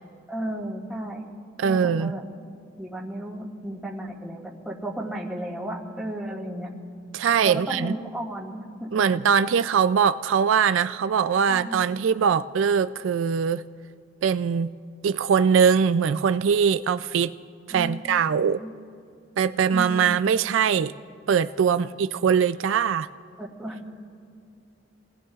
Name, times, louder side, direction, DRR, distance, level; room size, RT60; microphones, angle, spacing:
voice 1, 0.3-1.2 1.6-2.2 2.8-6.7 7.4-9.2 11.5-11.8 17.7-18.2 18.6-18.7 19.7-20.2 21.7-21.9 23.4-23.8, right 1 dB, 5° right, -3 dB, 2.6 m, -34 dB
voice 2, 1.6-2.1 7.1-7.9 8.9-13.6 14.2-14.7 15.0-17.3 17.7-18.6 19.4-20.9 21.3-23.1, right 7 dB, 80° right, 13 dB, 0.4 m, -22 dB
29.5 x 19.5 x 2.4 m, 2.3 s
head